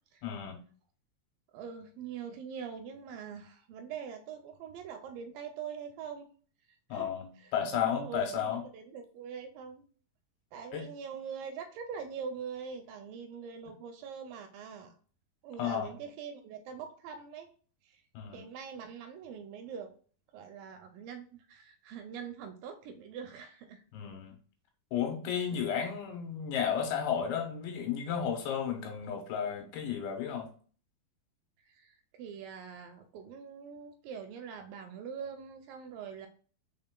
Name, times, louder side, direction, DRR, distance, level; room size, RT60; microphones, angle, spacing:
voice 1, 0.2-0.6 6.9-8.6 10.7-10.9 15.6-15.9 18.1-18.5 23.9-24.3 24.9-30.5, left 8 dB, 90° left, 3 dB, 3.0 m, -33 dB
voice 2, 1.5-6.3 6.9-7.1 7.4-9.8 10.5-15.0 15.4-17.5 17.8-18.0 18.3-19.9 20.3-23.8 25.5-25.6 31.7-36.3, right 6 dB, 80° right, 6 dB, 2.1 m, -43 dB
5.3 x 4.0 x 2.2 m, 0.42 s
omnidirectional pair, 4.3 m